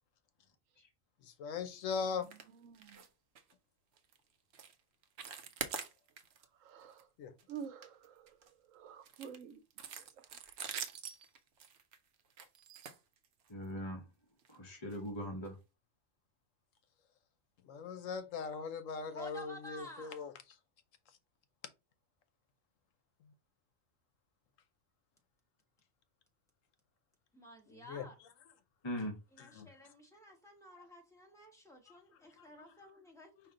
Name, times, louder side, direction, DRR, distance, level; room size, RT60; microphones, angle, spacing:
voice 1, 1.2-2.3 7.2-7.3 17.6-20.3 27.7-28.1 29.6-29.7 32.4-32.5, left 5 dB, 80° left, 1.1 m, -39 dB
voice 2, 2.1-3.0 6.4-7.1 7.5-10.8 30.7-30.9, right 7 dB, 85° right, 1.1 m, -51 dB
sound 1, 2.2-2.5 2.7-3.1 3.3-3.5 4.0-4.2 4.5-4.7 5.0-6.4 6.8-7.0 7.4-8.5 9.0-13.6 14.4-14.5 14.9-15.0 15.4-15.5, right 7 dB, 65° right, 0.8 m, -45 dB
voice 3, 13.5-14.1 14.5-15.6 28.8-29.1, equal, 25° left, 1.0 m, -40 dB
voice 4, 19.1-20.2 27.3-28.1 29.3-33.3, left 1 dB, ahead, 1.3 m, -53 dB
5.2 x 2.7 x 3.7 m
omnidirectional pair, 1.3 m